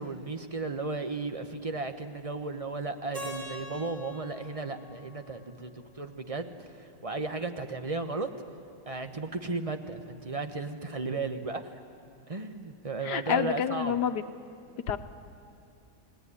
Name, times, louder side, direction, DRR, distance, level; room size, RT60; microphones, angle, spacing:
voice 1, 0.0-5.7 6.0-8.3 8.8-11.7 12.3-13.9, right 3 dB, 25° right, 7 dB, 1.1 m, -35 dB
Keyboard (musical), 3.1-6.1, left 1 dB, 70° right, 6.8 m, -44 dB
voice 2, 13.0-14.2 14.9-15.0, left 8 dB, 80° left, 9 dB, 1.5 m, -28 dB
29.5 x 18.5 x 9.9 m, 2.5 s
omnidirectional pair, 1.8 m